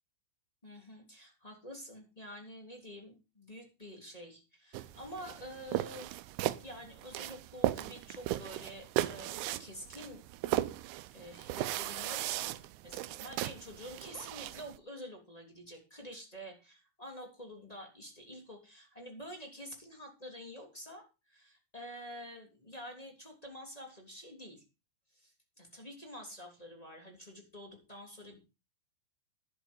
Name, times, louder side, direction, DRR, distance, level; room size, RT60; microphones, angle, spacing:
voice 1, 0.6-6.1 6.6-10.2 11.1-12.6 12.8-24.6 25.1-28.4, equal, 10° left, 1 dB, 2.3 m, -48 dB
sound 1, 4.7-14.8, right 15 dB, 85° right, 3.0 m, -37 dB
11.0 x 10.0 x 5.4 m, 0.30 s
omnidirectional pair, 5.2 m